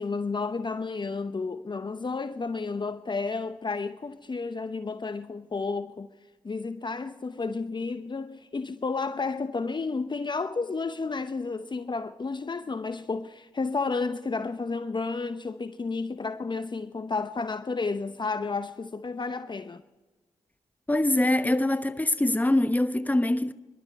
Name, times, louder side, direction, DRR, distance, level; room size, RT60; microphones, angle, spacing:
voice 1, 0.0-6.1 6.4-19.8, left 4 dB, 35° left, 0.9 m, -31 dB
voice 2, 20.9-23.5, left 1 dB, 15° left, 1.1 m, -24 dB
28.0 x 12.0 x 4.2 m
hypercardioid pair, 40°, 13 cm